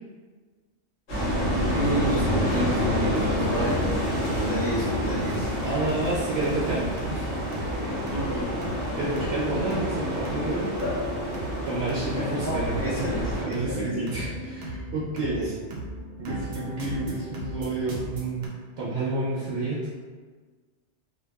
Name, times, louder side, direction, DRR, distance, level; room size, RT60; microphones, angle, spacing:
sound 1, 1.1-13.4, equal, 75° left, 1.2 m, -28 dB
voice 1, 1.7-3.8 4.3-5.5 8.1-8.5 10.8-10.9 12.2-14.3 15.3-15.5, equal, 20° left, -12 dB, 0.9 m, -30 dB
sound 2, 2.6-18.5, right 1 dB, 55° right, 0.5 m, -38 dB
sound 3, 5.5-6.7 6.9-12.8, right 1 dB, 55° left, 0.3 m, -43 dB
voice 2, 5.6-7.4 9.0-10.7 11.6-15.4 16.2-18.4 18.8-19.8, right 2 dB, 75° right, -7 dB, 0.9 m, -30 dB
2.6 x 2.1 x 2.2 m, 1.5 s
omnidirectional pair, 1.2 m